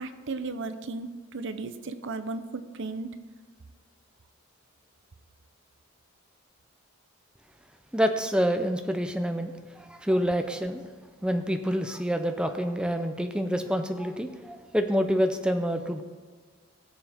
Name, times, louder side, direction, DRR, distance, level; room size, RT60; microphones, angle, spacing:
voice 1, 0.0-3.1, right 3 dB, 60° right, 11 dB, 0.7 m, -35 dB
voice 2, 7.9-10.9 11.2-16.0, equal, 5° right, 6 dB, 0.5 m, -27 dB
20.0 x 7.1 x 3.5 m, 1.5 s
head